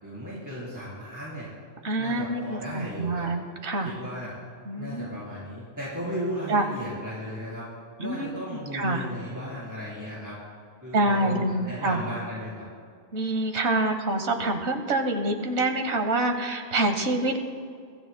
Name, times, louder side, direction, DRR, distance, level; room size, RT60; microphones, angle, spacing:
voice 1, 0.0-1.5 2.0-3.3 3.8-4.4 4.8-7.7 8.0-10.3 10.8-12.7, equal, 15° right, -8 dB, 3.8 m, -35 dB
voice 2, 1.8-3.9 4.7-5.1 6.5-6.6 8.0-8.3 8.7-9.1 10.9-12.0 13.1-17.4, right 2 dB, 70° right, 5 dB, 1.6 m, -26 dB
23.0 x 15.0 x 2.2 m, 2.2 s
omnidirectional pair, 1.2 m